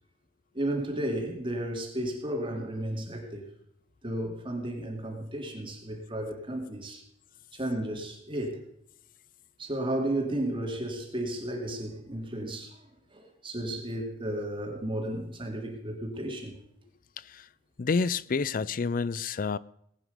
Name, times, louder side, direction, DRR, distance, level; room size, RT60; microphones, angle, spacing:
voice 1, 0.5-3.4 4.0-7.0 7.5-8.6 9.6-12.8 13.1-16.6, right 1 dB, 25° right, 2.3 m, -33 dB
voice 2, 17.8-19.6, left 4 dB, 45° left, 0.4 m, -28 dB
19.5 x 9.2 x 5.1 m
head